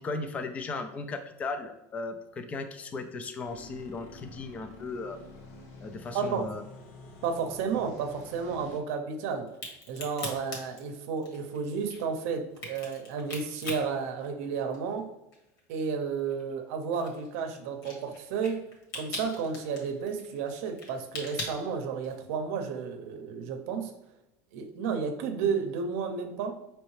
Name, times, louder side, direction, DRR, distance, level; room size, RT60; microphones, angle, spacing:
voice 1, 0.0-5.2 5.8-6.6, left 3 dB, 15° left, 7 dB, 0.3 m, -36 dB
sound 1, 3.4-8.8, left 2 dB, 80° left, 1.0 m, -48 dB
voice 2, 6.1-6.5 7.2-9.5 9.9-15.1 15.7-18.6 18.9-23.9 24.5-26.6, right 6 dB, 65° right, 5 dB, 0.7 m, -32 dB
Crack, 9.5-15.0 15.3-22.3, left 2 dB, 45° left, 1.4 m, -41 dB
5.3 x 3.1 x 3.2 m, 0.93 s
cardioid pair, 160°, 8 cm